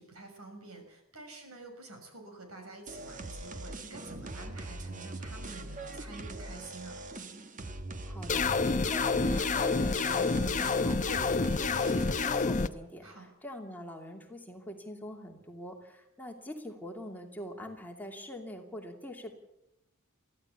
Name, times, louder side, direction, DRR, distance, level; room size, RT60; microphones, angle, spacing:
voice 1, 0.0-7.0 13.0-13.3, right 2 dB, 85° right, 5 dB, 6.1 m, -48 dB
sound 1, 2.9-12.3, right 2 dB, 35° right, 1.5 m, -41 dB
voice 2, 8.0-19.3, left 1 dB, 10° left, 2 dB, 2.7 m, -44 dB
sound 2, 8.3-12.7, left 4 dB, 35° left, 0.9 m, -28 dB
23.0 x 15.0 x 8.3 m, 0.85 s
head